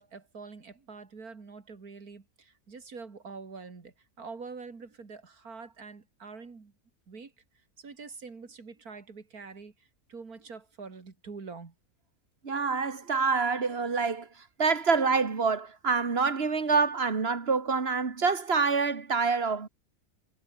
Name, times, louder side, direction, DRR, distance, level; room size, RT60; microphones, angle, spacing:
voice 1, 0.0-6.7 7.1-7.3 7.8-11.7, right 4 dB, 85° right, 3.1 m, -45 dB
voice 2, 12.4-14.3 14.6-19.7, right 4 dB, 45° right, 2.1 m, -26 dB
omnidirectional pair, 1.5 m